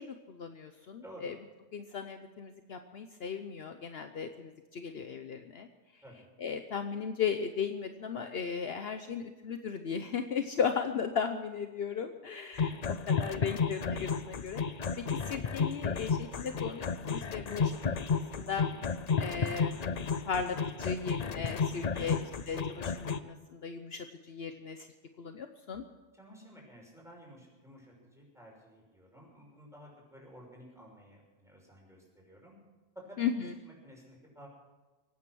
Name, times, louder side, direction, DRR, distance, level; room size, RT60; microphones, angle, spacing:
voice 1, 0.0-1.3 1.7-5.7 6.4-14.6 15.2-18.6 19.2-22.2 22.5-24.9 25.2-25.9 33.2-33.5, left 6 dB, 60° left, 7 dB, 1.0 m, -36 dB
voice 2, 1.0-1.4 6.0-6.3 21.9-22.2 26.1-32.5 32.9-33.2 33.6-34.5, equal, ahead, -2 dB, 6.0 m, -52 dB
sound 1, 12.6-23.2, left 5 dB, 40° left, 0.7 m, -32 dB
24.0 x 9.5 x 6.2 m, 1.2 s
omnidirectional pair, 1.2 m